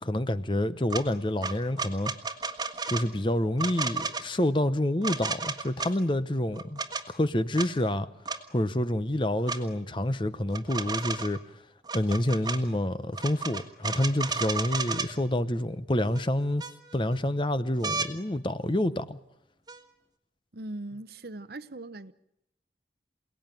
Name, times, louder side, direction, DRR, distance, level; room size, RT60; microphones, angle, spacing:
voice 1, 0.0-2.1 2.9-6.8 7.1-8.1 8.5-11.4 11.9-16.6 16.9-19.2, left 1 dB, 25° left, 0.9 m, -28 dB
sound 1, 0.9-1.0 1.4-3.1 3.6-4.2 5.0-5.9 6.6-7.0 7.5-7.7 8.2-8.4 9.5-9.6 10.5-11.4 11.8-12.6 13.1-15.1 16.1-16.2 16.6-17.1 17.8-18.1 19.7-19.8, right 4 dB, 20° right, 1.5 m, -32 dB
voice 2, 20.5-22.1, right 2 dB, 60° right, 0.9 m, -40 dB
28.0 x 18.5 x 9.1 m
head